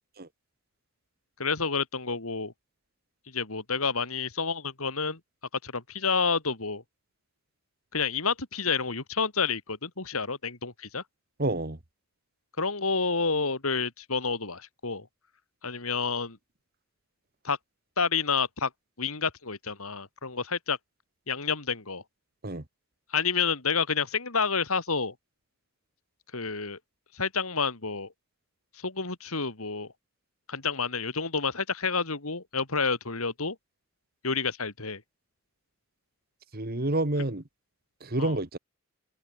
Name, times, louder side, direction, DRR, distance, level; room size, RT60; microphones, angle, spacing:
voice 1, 1.4-2.5 3.3-5.2 5.6-6.8 7.9-11.0 12.6-15.1 15.6-16.4 17.4-17.6 18.0-18.7 19.0-20.8 21.3-22.0 23.1-25.1 26.3-26.8 27.1-28.1 28.7-29.9 30.5-33.6 34.2-35.0 38.2-38.3, left 5 dB, 80° left, 2.9 m, -29 dB
voice 2, 11.4-11.8 22.4-22.6 36.5-37.4 38.0-38.6, right 2 dB, 45° right, 1.7 m, -28 dB
head